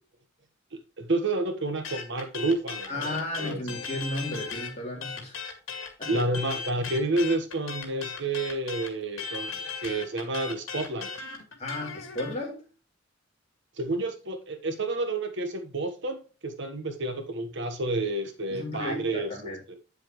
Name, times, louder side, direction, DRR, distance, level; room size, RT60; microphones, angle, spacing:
voice 1, 0.7-3.6 6.1-11.1 13.8-19.3, right 2 dB, 60° right, 1.3 m, -30 dB
sound 1, 1.8-4.7 5.0-12.3, left 5 dB, 80° left, 2.1 m, -37 dB
voice 2, 2.9-5.4 6.0-6.1 11.6-12.6 18.5-19.6, left 1 dB, 35° left, 3.3 m, -34 dB
8.5 x 7.4 x 3.1 m
head